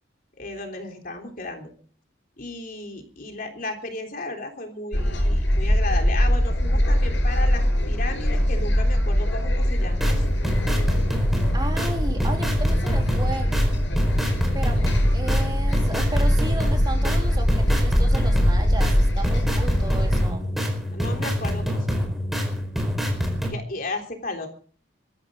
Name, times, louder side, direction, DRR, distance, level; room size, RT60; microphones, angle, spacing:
voice 1, 0.4-1.7 2.4-10.2 20.9-22.0 23.5-24.5, left 2 dB, 50° left, 3 dB, 3.6 m, -34 dB
sound 1, 4.9-20.2, equal, 70° left, 6.5 m, -22 dB
sound 2, 9.8-23.5, equal, ahead, 4.7 m, -26 dB
voice 2, 11.5-13.5 14.5-20.4, right 2 dB, 20° right, 2 dB, 3.5 m, -34 dB
23.0 x 14.5 x 3.8 m, 0.43 s
head